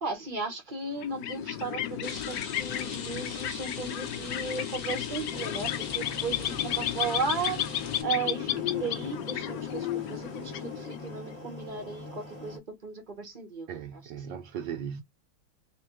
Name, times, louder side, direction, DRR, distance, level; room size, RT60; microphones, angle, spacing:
voice 1, 0.0-14.3, right 4 dB, 40° right, 0.7 m, -35 dB
sound 1, 0.9-11.3, left 12 dB, 80° left, 0.9 m, -33 dB
Rain, 2.0-8.0, left 6 dB, 55° left, 1.2 m, -40 dB
sound 2, 5.3-12.6, left 1 dB, 20° left, 0.8 m, -44 dB
voice 2, 13.7-15.0, right 8 dB, 80° right, 1.0 m, -37 dB
3.4 x 3.3 x 3.0 m
omnidirectional pair, 2.4 m